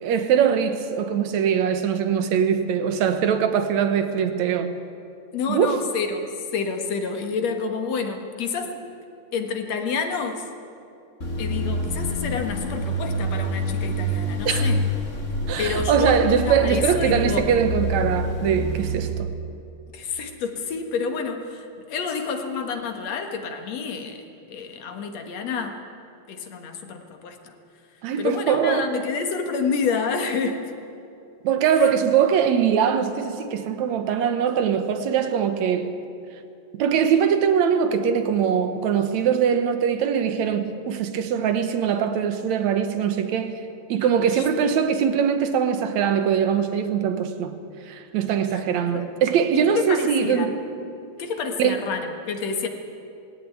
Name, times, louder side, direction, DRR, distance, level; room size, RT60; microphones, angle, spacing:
voice 1, 0.0-4.8 5.5-5.8 14.5-14.7 15.5-19.3 28.0-28.9 31.4-36.0 36.7-43.6 43.9-47.6 47.9-50.6 51.6-51.8, right 7 dB, 75° right, 2.4 m, -22 dB
voice 2, 5.3-6.3 6.5-8.8 9.3-10.4 11.4-14.8 15.6-17.6 19.9-24.2 24.5-25.8 26.3-27.5 28.2-30.6 31.8-31.9 44.2-44.4 48.5-48.6 48.9-49.1 49.7-50.5 51.2-52.7, left 5 dB, 65° left, 2.7 m, -29 dB
sound 1, 11.2-19.0, equal, 30° left, 1.9 m, -27 dB
19.0 x 17.0 x 9.2 m
omnidirectional pair, 3.3 m